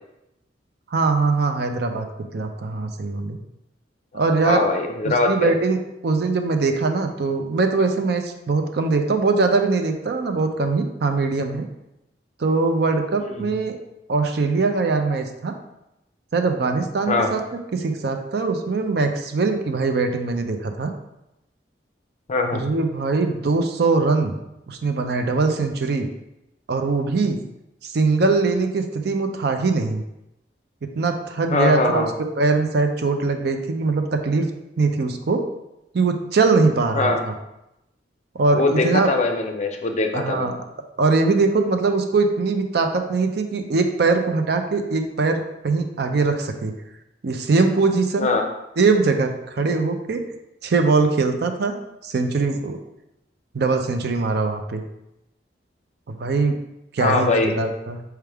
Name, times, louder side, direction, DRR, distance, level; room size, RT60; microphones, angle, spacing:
voice 1, 0.9-2.1 2.3-3.4 4.1-4.7 5.3-11.7 12.4-13.8 14.1-15.5 16.3-17.4 17.7-20.9 22.5-24.3 24.7-26.1 26.7-27.4 27.8-30.0 31.0-32.1 32.4-34.5 34.8-35.4 35.9-37.3 38.3-39.1 40.1-40.5 41.0-46.7 47.2-48.3 48.8-50.2 50.6-51.8 52.0-52.8 53.5-54.8 56.1-56.6 56.9-58.0, right 3 dB, 60° right, 6 dB, 0.4 m, -21 dB
voice 2, 4.4-5.5 13.3-13.5 17.1-17.4 22.3-22.6 31.5-32.1 36.9-37.2 38.5-40.6 48.2-48.5 57.0-57.5, left 3 dB, 40° left, 4 dB, 0.5 m, -22 dB
4.6 x 3.4 x 3.4 m, 0.88 s
head